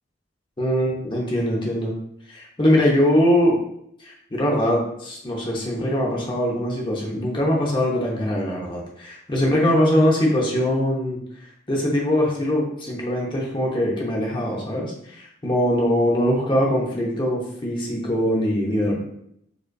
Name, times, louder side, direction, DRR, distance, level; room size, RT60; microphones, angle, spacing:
voice 1, 0.6-1.9 2.3-3.6 4.0-11.2 11.7-19.0, equal, 25° left, -2 dB, 0.6 m, -22 dB
4.9 x 2.3 x 2.3 m, 0.72 s
head